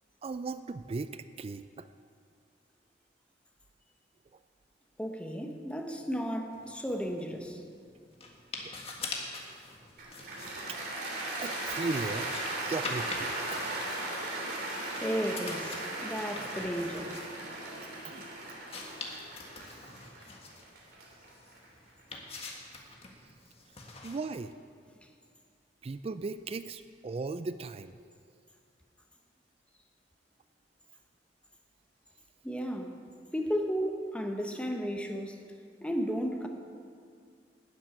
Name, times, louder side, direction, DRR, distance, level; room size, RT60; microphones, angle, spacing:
voice 1, 0.2-1.9 8.6-8.7 10.7-10.8 11.4-12.3 12.6-13.6 18.0-18.2 19.8-19.9 24.0-24.5 25.8-28.0, right 3 dB, 35° right, 12 dB, 0.3 m, -37 dB
voice 2, 5.0-7.6 15.0-17.1 32.4-32.9 33.3-35.4 35.8-36.5, equal, 5° left, 3 dB, 1.1 m, -34 dB
sound 1, 6.5-24.5, left 3 dB, 35° left, 1.6 m, -45 dB
Cheering / Applause, 10.0-22.2, right 2 dB, 60° right, 3.1 m, -37 dB
12.5 x 7.5 x 9.3 m, 2.2 s
head